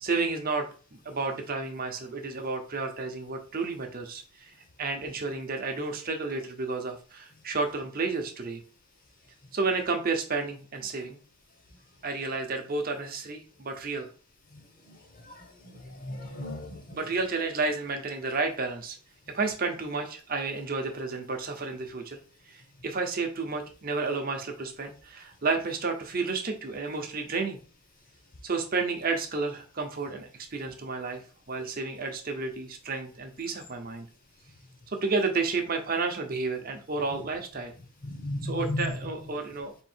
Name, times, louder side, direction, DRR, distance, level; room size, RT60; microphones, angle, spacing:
voice 1, 0.0-0.6 0.9-4.5 4.8-8.6 9.5-11.2 12.0-14.1 16.9-19.0 19.3-22.2 22.5-27.6 28.4-31.2 31.5-34.1 34.9-37.7 38.4-39.7, right 4 dB, 40° right, 4 dB, 0.8 m, -31 dB
voice 2, 15.6-16.8 38.0-38.9, left 1 dB, 40° left, 3 dB, 1.0 m, -34 dB
3.7 x 2.6 x 4.3 m, 0.37 s
head